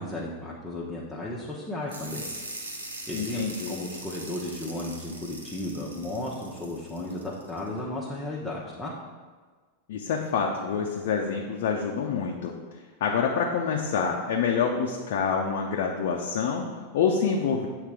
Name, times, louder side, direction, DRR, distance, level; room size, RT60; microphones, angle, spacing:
voice 1, 0.0-2.2 3.1-8.9, left 1 dB, 10° left, -5 dB, 0.9 m, -34 dB
sound 1, 1.9-7.7, right 2 dB, 75° right, 0.8 m, -41 dB
voice 2, 3.1-3.8 9.9-12.5 13.0-17.7, left 6 dB, 55° left, 0 dB, 0.6 m, -27 dB
8.1 x 3.2 x 4.8 m, 1.5 s
figure-of-eight pair, 90°, 0 cm